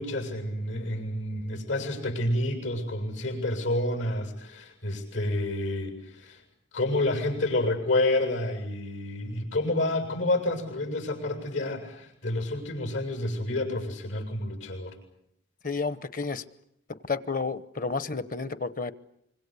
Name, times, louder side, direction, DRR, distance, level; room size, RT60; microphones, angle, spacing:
voice 1, 0.0-6.4 6.7-14.9, left 1 dB, 85° left, 7.5 m, -29 dB
voice 2, 15.6-16.4 17.1-18.9, left 4 dB, 45° left, 1.0 m, -31 dB
25.5 x 25.0 x 8.3 m
head